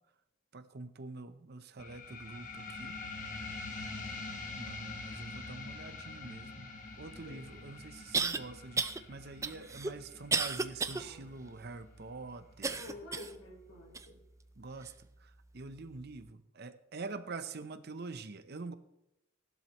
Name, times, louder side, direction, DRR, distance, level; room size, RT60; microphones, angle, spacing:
voice 1, 0.5-3.0 4.6-6.7 7.0-12.8 14.6-14.9 15.2-18.7, right 3 dB, 50° right, 11 dB, 0.7 m, -45 dB
sound 1, 1.8-12.8, left 3 dB, 40° left, 1.4 m, -45 dB
sound 2, 7.1-7.2 8.1-8.4 8.8-9.0 9.4-11.0 11.5-11.6 12.6-13.4 13.9-14.1 14.8-14.9, right 4 dB, 15° right, 0.4 m, -32 dB
voice 2, 10.9-11.3 12.7-14.2, left 1 dB, 85° left, -6 dB, 5.3 m, -49 dB
15.5 x 12.0 x 3.0 m, 0.86 s
head